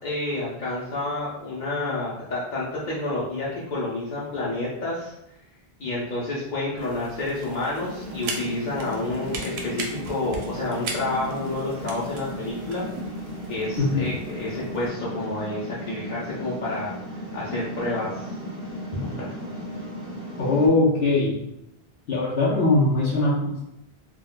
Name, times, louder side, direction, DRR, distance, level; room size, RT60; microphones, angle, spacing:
voice 1, 0.0-5.1 5.8-12.8 13.5-16.9 17.3-18.4 18.9-19.3, left 2 dB, 55° left, -7 dB, 0.7 m, -29 dB
sound 1, 6.8-14.9, right 3 dB, 85° right, 0.8 m, -39 dB
sound 2, 7.8-20.7, equal, 40° right, 1.5 m, -36 dB
voice 2, 20.4-21.4 22.1-23.6, left 2 dB, 85° left, -6 dB, 0.9 m, -21 dB
3.6 x 2.3 x 2.2 m, 0.83 s
omnidirectional pair, 1.0 m